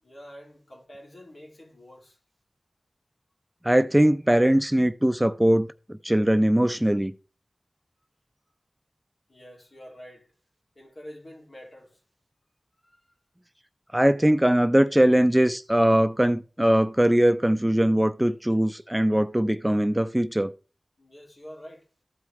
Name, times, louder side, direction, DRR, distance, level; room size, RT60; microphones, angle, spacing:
voice 1, 0.0-2.2 9.3-10.3 10.7-12.0 12.8-13.1 21.0-21.9, equal, 70° left, 2.6 m, -47 dB
voice 2, 3.6-7.1 13.9-20.5, right 1 dB, 10° right, 0.5 m, -21 dB
13.5 x 4.8 x 3.2 m
wide cardioid pair, 55°, 0 cm